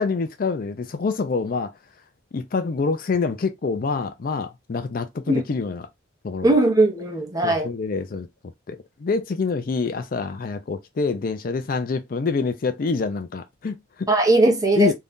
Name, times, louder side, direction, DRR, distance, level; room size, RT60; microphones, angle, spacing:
voice 1, 0.0-1.7 2.3-5.9 6.2-6.5 7.4-8.3 8.7-14.1 14.8-14.9, left 4 dB, 50° left, 0.4 m, -26 dB
voice 2, 6.4-7.7 14.1-14.9, right 2 dB, 20° right, 0.8 m, -19 dB
2.6 x 2.3 x 3.5 m
head